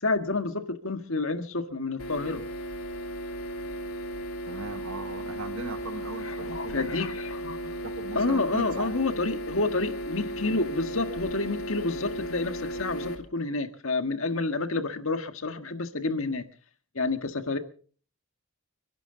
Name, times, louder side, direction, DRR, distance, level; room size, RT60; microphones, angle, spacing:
voice 1, 0.0-2.4 6.2-7.8 8.2-16.4 17.0-17.6, left 3 dB, 65° left, 8 dB, 1.7 m, -29 dB
sound 1, 2.0-13.2, right 1 dB, 90° left, 2.6 m, -35 dB
voice 2, 4.5-6.8 7.8-9.0, right 3 dB, 70° right, 7 dB, 1.2 m, -39 dB
29.5 x 11.5 x 3.9 m, 0.44 s
head